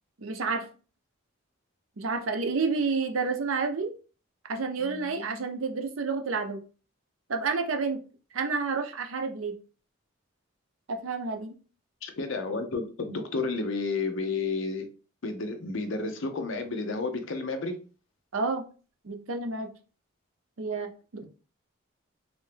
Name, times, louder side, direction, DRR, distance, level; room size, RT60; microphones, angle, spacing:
voice 1, 0.2-0.7 2.0-3.9 4.5-6.6 7.3-8.0 8.3-9.6 10.9-11.6 18.3-18.6 19.0-19.7 20.6-21.3, right 4 dB, 75° right, 0.6 m, -30 dB
voice 2, 4.8-5.4 12.0-14.9 15.2-17.8, left 3 dB, 65° left, 0.6 m, -31 dB
3.3 x 2.7 x 3.3 m
head